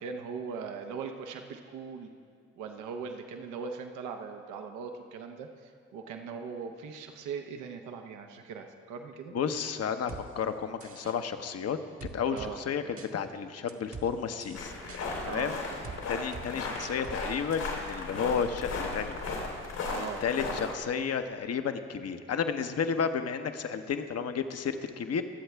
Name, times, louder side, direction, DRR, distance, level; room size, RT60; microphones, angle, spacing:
voice 1, 0.0-2.1 2.6-9.3 12.3-12.6 15.2-15.8 19.8-20.2, right 5 dB, 80° right, 5 dB, 0.9 m, -40 dB
voice 2, 9.3-11.8 12.1-15.5 16.1-19.2 19.9-25.2, left 6 dB, 55° left, 8 dB, 0.9 m, -32 dB
sound 1, 10.1-10.2 10.8-11.2 12.0-12.5 13.0-13.1 13.7-14.1 14.4-15.0 15.8-16.0 16.3-16.5 16.8-17.2 17.5-17.6, right 5 dB, 50° right, 1.1 m, -43 dB
sound 2, 14.5-20.7, left 3 dB, 85° left, 2.9 m, -36 dB
23.0 x 8.0 x 3.4 m, 2.2 s
hypercardioid pair, 45°, 30 cm